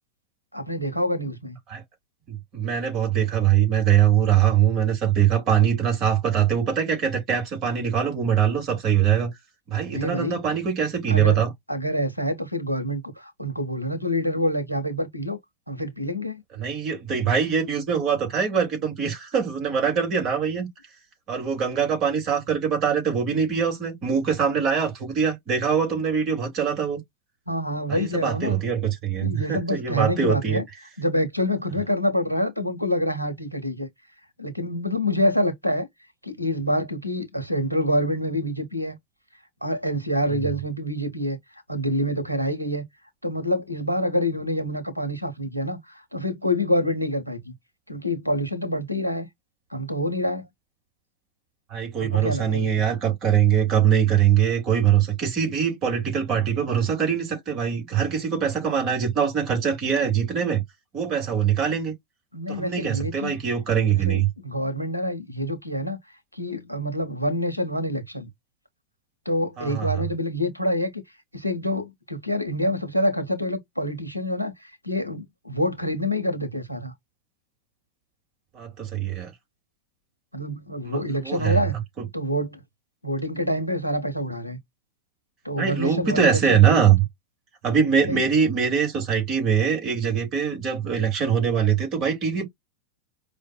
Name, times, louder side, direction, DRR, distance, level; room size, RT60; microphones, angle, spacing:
voice 1, 0.5-1.6 9.9-10.4 11.1-11.4 11.7-15.4 15.7-16.4 27.5-28.6 29.2-30.6 31.0-33.9 34.4-35.9 36.2-39.0 39.6-41.4 41.7-42.8 43.2-47.5 47.9-49.3 49.7-50.5 52.0-52.8 62.3-63.3 64.0-66.0 66.3-68.3 69.2-71.0 71.3-76.9 80.3-81.7 82.1-82.6 83.0-84.6 85.4-86.9 88.1-88.2, equal, 90° left, 0.9 m, -27 dB
voice 2, 2.3-9.3 9.7-11.5 16.6-20.7 21.3-27.0 27.9-30.6 40.3-40.4 51.7-60.6 60.9-61.9 62.5-64.3 69.6-70.0 78.5-79.3 80.8-81.6 82.0-82.1 85.6-87.0 87.6-92.4, right 8 dB, 35° right, 2.3 m, -22 dB
5.0 x 2.5 x 2.2 m
figure-of-eight pair, 90°, 0 cm